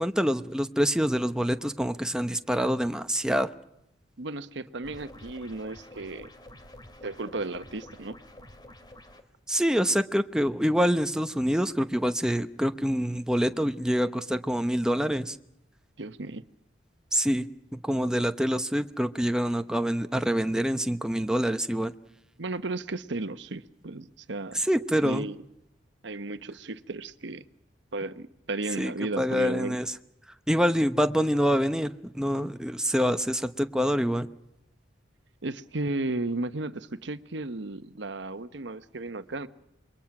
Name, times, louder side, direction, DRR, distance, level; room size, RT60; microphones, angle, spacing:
voice 1, 0.0-3.5 9.5-15.4 17.1-21.9 24.5-25.3 28.8-29.9 30.5-34.3, equal, 5° right, 0.9 m, -26 dB
voice 2, 4.2-6.3 7.0-8.2 16.0-16.4 22.4-24.6 25.0-25.4 26.0-27.4 27.9-29.8 35.4-39.5, right 2 dB, 65° right, 1.1 m, -34 dB
sound 1, 4.8-9.2, left 1 dB, 25° left, 2.5 m, -49 dB
27.0 x 22.5 x 6.0 m
head